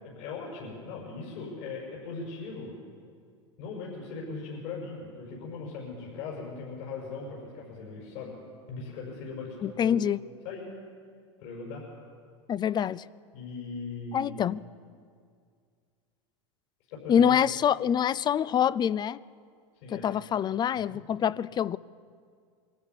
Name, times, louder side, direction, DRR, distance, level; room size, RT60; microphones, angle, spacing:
voice 1, 0.0-2.8 3.6-8.3 8.7-10.0 10.4-10.7 11.4-11.8 13.3-14.4 16.9-17.4 19.8-20.1 20.8-21.0, left 4 dB, 65° left, 6.6 m, -39 dB
voice 2, 9.6-10.2 12.5-13.0 14.1-14.6 17.1-19.2 19.9-21.8, left 8 dB, 30° left, 0.5 m, -25 dB
22.5 x 13.5 x 9.9 m
hypercardioid pair, 105°, 16 cm